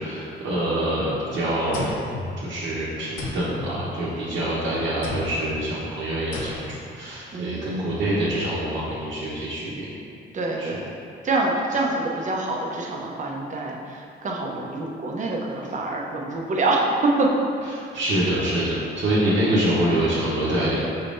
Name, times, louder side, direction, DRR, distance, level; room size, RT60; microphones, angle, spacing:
voice 1, 0.0-1.9 2.4-9.9 10.6-10.8 11.8-11.9 17.9-20.8, right 1 dB, 75° right, -10 dB, 1.0 m, -25 dB
sound 1, 1.7-2.8 3.2-4.5 5.0-5.6 6.3-7.0, left 2 dB, 85° left, 0.6 m, -35 dB
voice 2, 7.3-8.0 10.3-10.8 11.2-17.3 19.2-19.5, right 2 dB, 40° right, -2 dB, 0.7 m, -26 dB
5.6 x 3.5 x 2.6 m, 2.5 s
cardioid pair, 90°, 20 cm